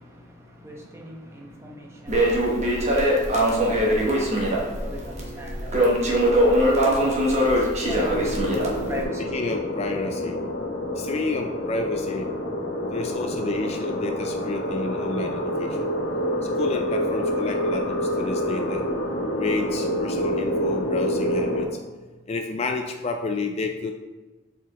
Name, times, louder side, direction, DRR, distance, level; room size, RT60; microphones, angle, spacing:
voice 1, 0.0-2.6 3.0-5.8 6.4-9.3, equal, 15° right, 0.9 m, -39 dB
Crackle, 2.1-9.0, equal, 35° right, 1.1 m, -22 dB
sound 1, 7.8-21.6, equal, 80° left, 1.4 m, -27 dB
voice 2, 9.2-10.4 11.0-12.3 12.9-15.8 16.6-18.8 19.4-21.7 22.3-23.9, left 3 dB, 35° left, 0.3 m, -30 dB
7.1 x 4.5 x 2.9 m
head